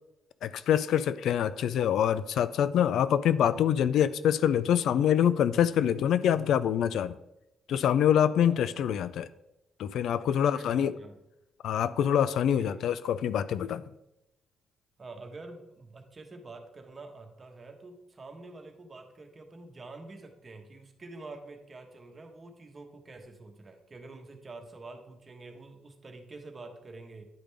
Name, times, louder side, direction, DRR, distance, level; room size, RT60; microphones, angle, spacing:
voice 1, 0.4-7.2 7.7-9.3 9.8-10.9 11.6-13.8, left 9 dB, 75° left, 15 dB, 0.3 m, -25 dB
voice 2, 10.2-11.2 12.5-12.8 15.0-27.2, right 3 dB, 30° right, 4 dB, 1.2 m, -47 dB
10.5 x 5.1 x 3.4 m, 0.88 s
cardioid pair, 90°, 0 cm